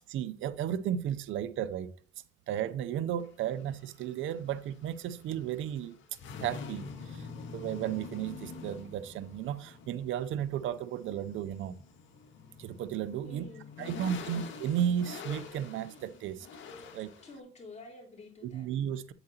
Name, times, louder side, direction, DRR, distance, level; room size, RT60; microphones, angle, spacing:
voice 1, 0.1-1.9 2.5-6.0 6.4-11.8 12.6-13.4 13.8-16.5 16.9-17.1 18.5-19.1, right 10 dB, 85° right, 0.6 m, -34 dB
sound 1, 3.2-17.4, left 5 dB, 75° left, 1.7 m, -46 dB
voice 2, 13.2-14.4 17.2-18.7, left 3 dB, 35° left, 3.6 m, -49 dB
8.8 x 7.9 x 2.9 m
cardioid pair, 90°, 20 cm